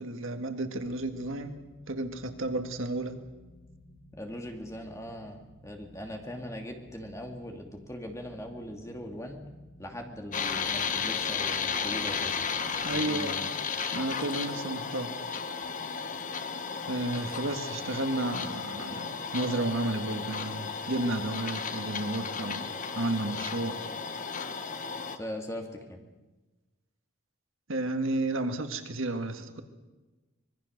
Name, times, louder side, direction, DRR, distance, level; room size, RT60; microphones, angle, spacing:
voice 1, 0.0-1.6 1.9-3.2 12.8-13.4 13.9-15.1 16.9-23.8 27.7-29.6, right 2 dB, 65° right, 7 dB, 1.8 m, -32 dB
sound 1, 0.8-12.8, left 1 dB, 65° left, 5.0 m, -55 dB
voice 2, 4.1-9.4 9.8-12.5 12.9-13.5 25.1-26.0, left 1 dB, 15° left, 3 dB, 2.5 m, -40 dB
sound 2, 10.3-25.2, left 6 dB, 35° left, 1.2 m, -34 dB
25.5 x 21.0 x 6.7 m, 1.2 s
head